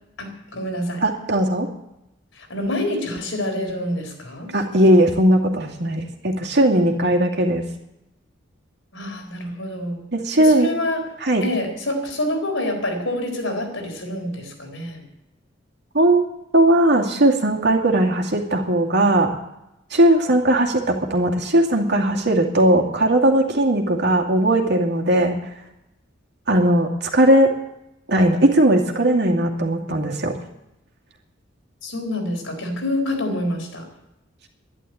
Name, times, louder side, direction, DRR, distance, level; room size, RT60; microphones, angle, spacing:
voice 1, 0.2-1.0 2.4-4.5 8.9-10.0 10.4-11.0 11.4-15.1 31.8-33.9, left 1 dB, 85° left, 3 dB, 4.1 m, -27 dB
voice 2, 1.0-1.7 4.5-7.6 10.1-10.7 11.2-11.4 15.9-16.2 16.5-19.3 19.9-25.3 26.5-27.5 28.1-30.4, right 1 dB, 60° right, 1 dB, 2.4 m, -18 dB
12.0 x 11.0 x 8.6 m, 0.88 s
head